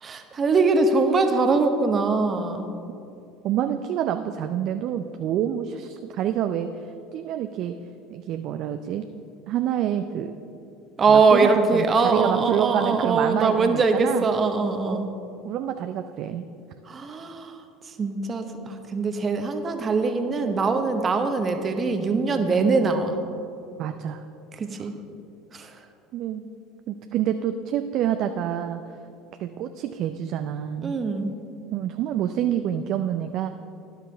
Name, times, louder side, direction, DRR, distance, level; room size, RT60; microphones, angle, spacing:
voice 1, 0.0-2.7 11.0-15.1 16.9-17.6 17.9-23.1 24.5-24.9 25.5-25.8 30.8-31.3, right 4 dB, 30° right, 6 dB, 1.0 m, -22 dB
voice 2, 3.4-7.8 8.1-9.1 9.5-10.3 11.1-14.3 14.9-15.1 15.4-16.5 23.8-24.2 24.8-24.9 26.1-26.4 26.9-28.8 29.4-30.9 31.7-33.5, right 10 dB, 55° right, 8 dB, 0.4 m, -27 dB
12.5 x 10.0 x 3.4 m, 2.6 s
hypercardioid pair, 80°, 0 cm